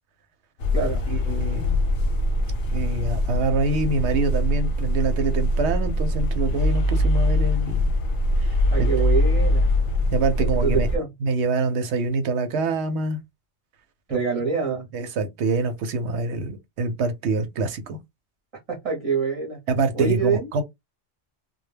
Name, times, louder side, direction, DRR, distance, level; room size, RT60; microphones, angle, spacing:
sound 1, 0.6-11.0, left 1 dB, 70° left, 0.8 m, -22 dB
voice 1, 1.1-1.8 2.7-7.8 8.4-8.9 10.1-10.9 11.2-13.2 14.1-14.2 14.9-18.0 19.7-20.6, right 3 dB, 85° right, 0.9 m, -25 dB
voice 2, 8.7-9.7 10.4-11.1 14.1-14.9 18.7-19.6 19.9-20.5, right 5 dB, 35° right, 0.7 m, -25 dB
2.2 x 2.1 x 3.2 m
omnidirectional pair, 1.1 m